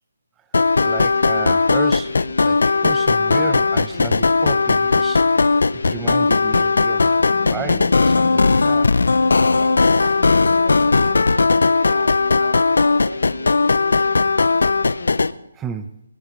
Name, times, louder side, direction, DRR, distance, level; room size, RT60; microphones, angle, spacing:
sound 1, 0.5-15.3, left 4 dB, 70° left, 0.5 m, -17 dB
voice 1, 0.8-8.9 15.5-16.0, right 7 dB, 15° right, 10 dB, 0.6 m, -33 dB
sound 2, 2.1-15.5, left 6 dB, 55° left, 1.1 m, -37 dB
voice 2, 9.5-13.9, right 1 dB, 85° right, 4 dB, 2.0 m, -35 dB
26.5 x 16.5 x 2.5 m, 0.87 s
figure-of-eight pair, 145°, 0 cm